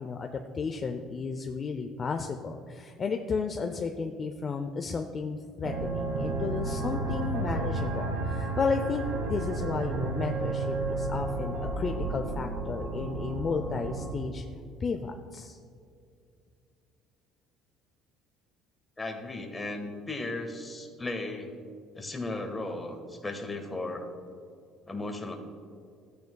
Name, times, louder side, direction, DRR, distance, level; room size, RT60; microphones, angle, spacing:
voice 1, 0.0-14.4 14.8-15.6, left 4 dB, 35° left, 4 dB, 0.5 m, -33 dB
sound 1, 5.6-14.1, right 3 dB, 70° right, 2.5 m, -32 dB
voice 2, 19.0-21.5 21.9-24.1 24.9-25.4, left 2 dB, 15° left, 3 dB, 1.4 m, -36 dB
13.5 x 9.4 x 2.3 m, 2.4 s
cardioid pair, 105°, 0 cm